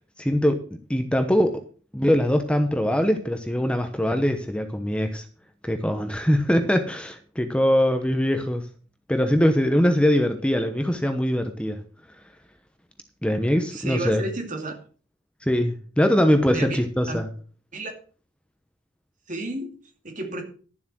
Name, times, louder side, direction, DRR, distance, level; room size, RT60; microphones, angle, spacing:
voice 1, 0.2-0.6 0.9-1.6 1.9-5.2 5.6-8.7 9.1-11.8 13.2-14.2 15.4-17.3, equal, 5° left, 7 dB, 0.9 m, -22 dB
voice 2, 13.7-14.8 16.5-17.2 17.7-17.9 19.3-19.7 20.0-20.4, right 2 dB, 45° right, 4 dB, 2.7 m, -32 dB
12.0 x 7.4 x 6.2 m, 0.40 s
head